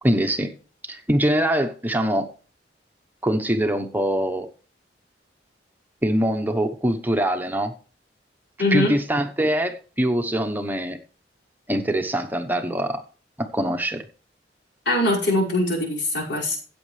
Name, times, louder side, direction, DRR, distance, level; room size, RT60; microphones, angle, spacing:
voice 1, 0.0-0.5 0.8-2.3 3.2-4.5 6.0-7.7 8.7-11.0 11.7-13.0 13.4-14.0, right 1 dB, 10° right, 5 dB, 0.9 m, -23 dB
voice 2, 8.6-9.0 14.9-16.6, left 1 dB, 70° left, -3 dB, 5.4 m, -22 dB
14.0 x 8.5 x 3.3 m, 0.38 s
head